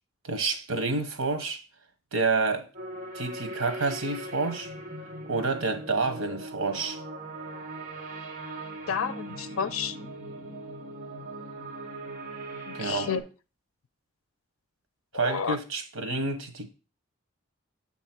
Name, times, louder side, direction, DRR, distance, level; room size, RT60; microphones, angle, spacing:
voice 1, 0.2-1.6 2.1-2.7 3.1-4.7 5.3-7.0 12.7-13.1 15.1-16.7, right 3 dB, 80° right, 1.1 m, -29 dB
sound 1, 2.7-13.2, right 1 dB, 35° right, 1.2 m, -40 dB
voice 2, 8.9-10.0 12.7-13.2 15.1-15.6, left 7 dB, 90° left, 0.5 m, -30 dB
7.2 x 3.0 x 5.9 m
head